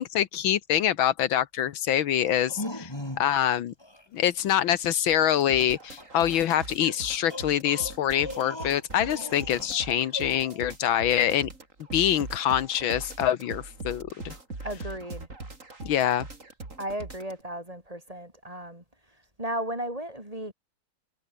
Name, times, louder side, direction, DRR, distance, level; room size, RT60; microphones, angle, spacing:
voice 1, 0.0-2.9 3.2-3.7 4.1-11.5 11.9-14.3 15.8-16.3, left 10 dB, 80° left, 1.8 m, -25 dB
sound 1, 2.3-3.4 3.8-4.0 6.0-6.1 6.8-9.8 10.1-10.6, left 1 dB, 10° left, 3.9 m, -39 dB
sound 2, 5.1-17.4, right 3 dB, 40° right, 4.4 m, -41 dB
voice 2, 14.6-15.3 16.8-18.8 19.4-20.5, right 1 dB, 15° right, 5.8 m, -35 dB
omnidirectional pair, 2.2 m